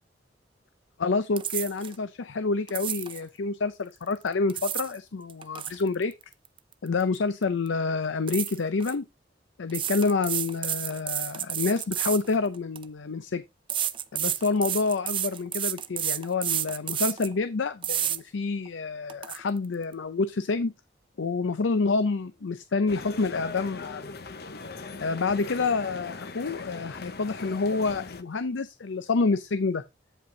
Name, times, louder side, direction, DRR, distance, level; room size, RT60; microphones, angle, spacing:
voice 1, 1.0-6.1 6.8-9.0 9.6-13.4 14.1-20.7 21.2-24.1 25.0-29.8, left 4 dB, 85° left, 0.6 m, -28 dB
sound 1, 1.4-1.9 2.7-3.2 4.3-5.0 5.3-7.2 7.4-7.7 8.3-8.9 9.7-12.8 13.7-17.3 17.8-18.2 18.7-18.8 19.1-19.4, right 10 dB, 25° right, 0.5 m, -30 dB
sound 2, 22.9-28.2, left 3 dB, 55° left, 0.8 m, -40 dB
8.8 x 5.2 x 3.8 m
head